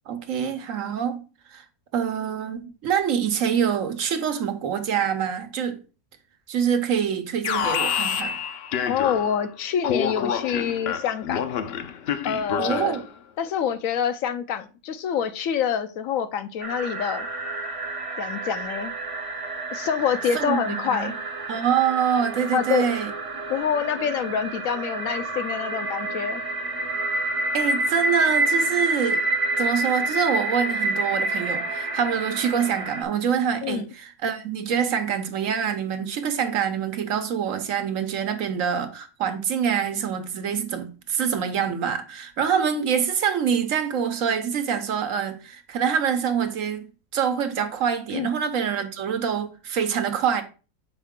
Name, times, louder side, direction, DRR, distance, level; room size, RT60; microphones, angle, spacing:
voice 1, 0.1-1.2 1.5-1.6 1.9-5.8 6.5-8.3 12.6-13.0 20.3-21.2 21.5-23.1 27.5-29.2 29.6-50.4, right 7 dB, 70° right, 1.2 m, -25 dB
Alarm, 7.4-9.5 9.8-13.1, left 7 dB, 60° left, 0.7 m, -28 dB
voice 2, 8.9-11.4 12.2-13.0 13.4-17.3 18.2-18.9 19.7-21.2 22.5-22.9 23.5-26.4 33.6-33.9 48.1-48.3, left 8 dB, 75° left, 1.0 m, -26 dB
sound 1, 16.6-33.0, right 2 dB, 35° right, 0.6 m, -28 dB
6.4 x 4.6 x 3.6 m
omnidirectional pair, 1.4 m